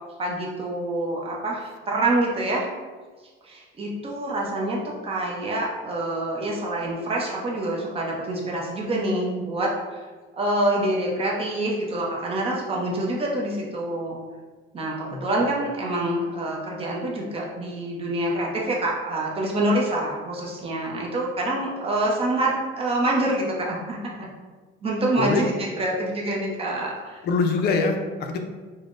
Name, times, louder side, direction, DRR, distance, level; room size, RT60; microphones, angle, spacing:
voice 1, 0.2-2.7 3.4-9.7 10.3-14.2 14.7-24.3 24.8-27.2, right 1 dB, 25° right, -2 dB, 0.6 m, -26 dB
voice 2, 27.2-28.4, left 4 dB, 50° left, 4 dB, 0.5 m, -24 dB
5.3 x 2.1 x 2.5 m, 1.4 s
cardioid pair, 150°, 21 cm